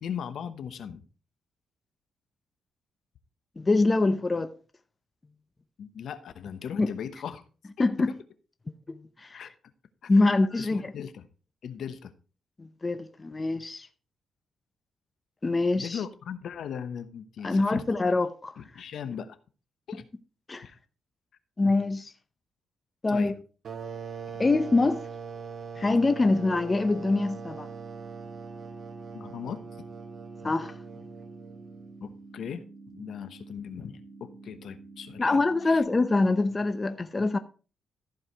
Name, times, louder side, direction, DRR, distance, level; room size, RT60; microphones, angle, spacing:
voice 1, 0.0-1.0 5.8-7.4 7.8-8.2 9.3-9.5 10.0-11.3 11.6-12.1 15.7-17.8 18.6-19.4 19.9-20.0 20.6-20.8 23.1-23.3 29.1-29.6 32.0-35.8, left 8 dB, 65° left, 1.0 m, -38 dB
voice 2, 3.6-4.5 6.8-6.9 7.8-8.1 8.9-9.4 10.1-10.9 12.6-13.9 15.4-16.0 17.4-18.5 20.5-20.6 21.6-22.1 23.0-23.3 24.4-25.0 25.8-27.7 30.4-30.7 35.2-37.4, left 3 dB, 25° left, 0.7 m, -24 dB
sound 1, 23.6-32.0, right 6 dB, 50° right, 1.4 m, -41 dB
sound 2, 25.8-35.8, right 3 dB, 90° right, 2.5 m, -49 dB
14.0 x 4.9 x 4.7 m
cardioid pair, 115°, 0 cm